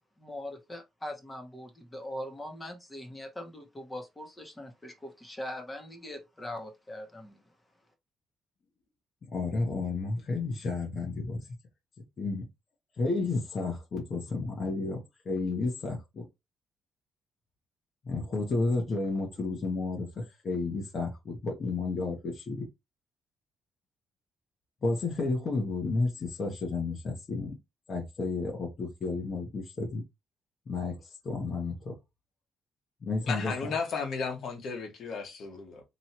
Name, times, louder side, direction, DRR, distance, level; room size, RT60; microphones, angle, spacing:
voice 1, 0.2-7.4, left 1 dB, 20° left, 1.2 m, -41 dB
voice 2, 9.3-11.5 12.2-12.4 13.0-16.3 18.0-22.6 24.8-27.5 27.9-30.0 30.7-32.0 33.0-33.5, left 3 dB, 45° left, 1.3 m, -32 dB
voice 3, 33.3-35.8, left 5 dB, 65° left, 1.4 m, -34 dB
3.1 x 2.7 x 4.4 m
cardioid pair, 90°, 0 cm